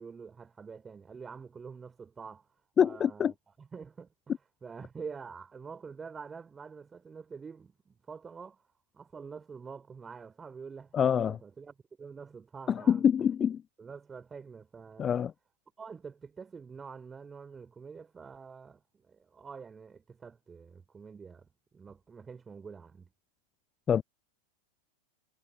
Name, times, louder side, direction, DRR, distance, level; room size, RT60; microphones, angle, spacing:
voice 1, 0.0-2.5 2.8-4.1 4.6-8.6 8.9-13.0 13.8-15.1 15.8-21.5 21.7-23.1, right 5 dB, 15° right, 4.9 m, -46 dB
voice 2, 2.8-3.3 10.9-11.4 12.7-13.6 15.0-15.3 23.9-24.0, left 8 dB, 25° left, 0.6 m, -25 dB
figure-of-eight pair, 90°, 0 cm